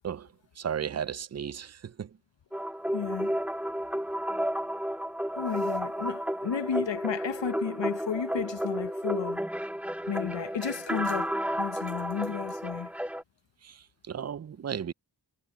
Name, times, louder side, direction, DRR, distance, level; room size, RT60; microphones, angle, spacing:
voice 1, 0.6-2.1 13.6-14.9, right 8 dB, 35° right, 0.5 m, -35 dB
sound 1, 2.5-13.2, equal, 5° right, 1.7 m, -32 dB
voice 2, 2.9-3.3 5.4-9.4 10.1-12.9, left 7 dB, 75° left, 1.1 m, -33 dB
cardioid pair, 55°, 44 cm